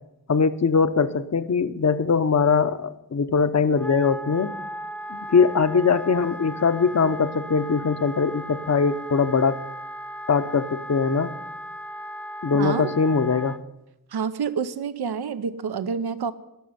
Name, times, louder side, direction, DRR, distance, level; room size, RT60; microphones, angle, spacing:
voice 1, 0.3-4.6 5.1-9.6 10.3-11.3 12.4-13.6, left 5 dB, 45° left, 12 dB, 0.8 m, -21 dB
Wind instrument woodwind instrument, 3.7-13.6, equal, 5° left, 0.7 m, -37 dB
voice 2, 12.5-12.9 14.1-16.3, right 6 dB, 85° right, 13 dB, 0.7 m, -28 dB
11.5 x 6.7 x 9.4 m, 0.88 s
wide cardioid pair, 75°, 38 cm